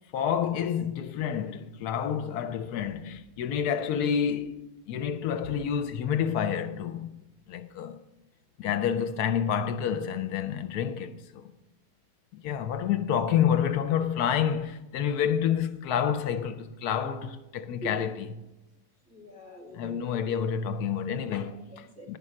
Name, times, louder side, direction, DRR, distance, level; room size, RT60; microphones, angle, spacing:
voice 1, 0.1-4.6 4.9-7.1 7.5-8.0 8.6-11.5 12.3-18.3 19.7-21.7 22.1-22.2, left 8 dB, 80° left, 1.1 m, -28 dB
voice 2, 19.1-20.3 21.5-22.1, right 1 dB, 10° right, 1.8 m, -44 dB
11.0 x 5.3 x 7.4 m
omnidirectional pair, 1.7 m